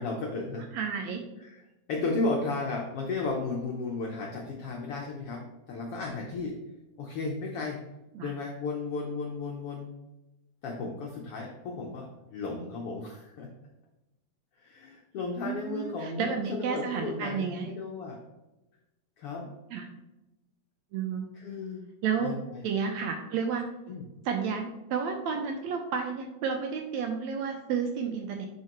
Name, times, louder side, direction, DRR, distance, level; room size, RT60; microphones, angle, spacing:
voice 1, 0.0-0.7 1.4-1.6 1.9-5.4 5.7-6.6 7.0-7.8 8.2-9.9 10.6-13.5 14.6-18.2 19.2-19.5 21.3-21.9 22.2-22.6 23.9-24.0, left 3 dB, 75° left, -1 dB, 1.3 m, -34 dB
voice 2, 0.7-1.2 8.1-8.3 15.4-17.7 19.7-19.9 20.9-21.3 22.0-22.3 22.6-23.6 24.2-28.5, right 6 dB, 75° right, 4 dB, 1.7 m, -31 dB
9.4 x 4.5 x 3.0 m, 1.0 s
omnidirectional pair, 3.6 m